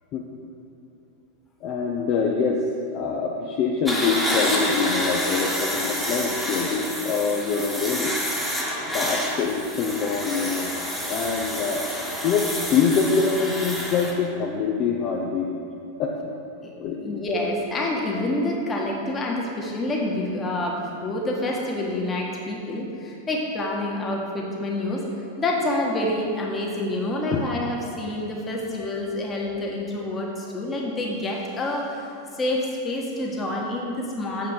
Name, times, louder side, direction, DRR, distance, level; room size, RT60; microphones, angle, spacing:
voice 1, 1.6-2.6 2.9-8.1 8.9-10.7 11.1-11.8 12.2-15.5 16.0-16.3 16.8-17.2 27.3-27.5, left 5 dB, 35° left, -1 dB, 0.7 m, -25 dB
sound 1, 3.8-14.1, equal, ahead, 1.4 m, -28 dB
voice 2, 17.0-25.0 25.4-32.1 32.3-34.5, left 1 dB, 20° left, -1 dB, 1.5 m, -27 dB
7.2 x 5.8 x 6.4 m, 2.6 s
figure-of-eight pair, 90°, 0 cm